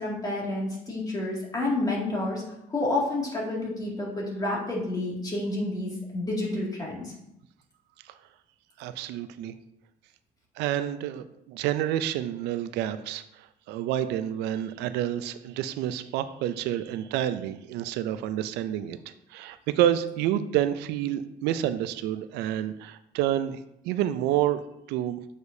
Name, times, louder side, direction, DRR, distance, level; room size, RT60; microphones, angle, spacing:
voice 1, 0.0-2.4 2.7-7.1, left 2 dB, 20° left, -4 dB, 2.2 m, -29 dB
voice 2, 8.8-9.5 10.6-19.0 19.3-24.6 24.9-25.2, right 11 dB, 90° right, 12 dB, 0.4 m, -29 dB
8.0 x 5.0 x 2.7 m, 0.81 s
cardioid pair, 110°, 17 cm